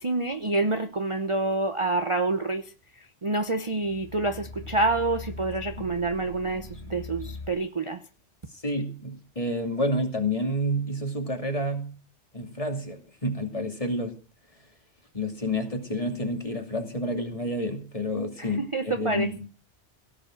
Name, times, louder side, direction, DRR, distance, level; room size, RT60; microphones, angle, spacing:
voice 1, 0.0-8.0 18.4-19.5, right 2 dB, 30° right, 8 dB, 0.8 m, -28 dB
sound 1, 3.7-7.5, left 2 dB, 65° left, 2.6 m, -41 dB
voice 2, 8.6-11.9 12.3-14.1 15.1-19.4, left 1 dB, 30° left, 4 dB, 2.7 m, -29 dB
17.0 x 7.6 x 7.7 m, 0.37 s
omnidirectional pair, 1.2 m